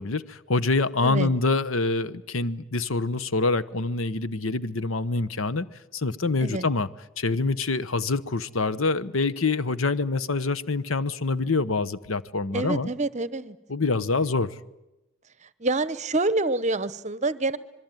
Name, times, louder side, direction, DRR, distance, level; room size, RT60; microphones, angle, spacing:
voice 1, 0.0-5.7 5.9-6.9 7.2-12.9 13.7-14.5, left 3 dB, 75° left, 1.1 m, -26 dB
voice 2, 12.5-13.6 15.6-17.6, right 2 dB, 35° right, 0.9 m, -26 dB
26.5 x 22.5 x 9.2 m
head